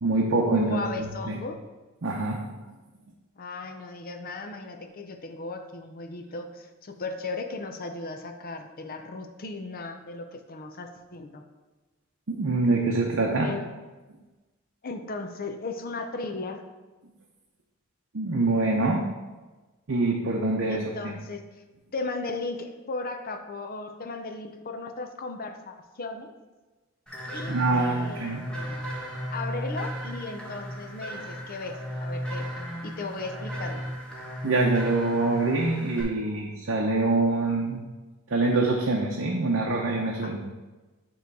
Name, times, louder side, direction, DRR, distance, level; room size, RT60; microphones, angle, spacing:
voice 1, 0.0-1.4 2.0-2.6 12.3-13.5 18.1-19.0 19.9-20.8 27.5-28.4 34.4-37.8 38.3-40.4, right 2 dB, 60° right, -1 dB, 0.7 m, -25 dB
voice 2, 0.6-1.6 3.4-11.4 13.4-13.7 14.8-16.6 20.7-21.4 21.9-26.3 27.3-28.8 29.3-32.5 32.8-33.9 40.2-40.3, left 3 dB, 45° left, 6 dB, 0.7 m, -36 dB
sound 1, 27.1-36.0, equal, 5° left, 1.5 m, -35 dB
9.2 x 3.1 x 4.7 m, 1.2 s
head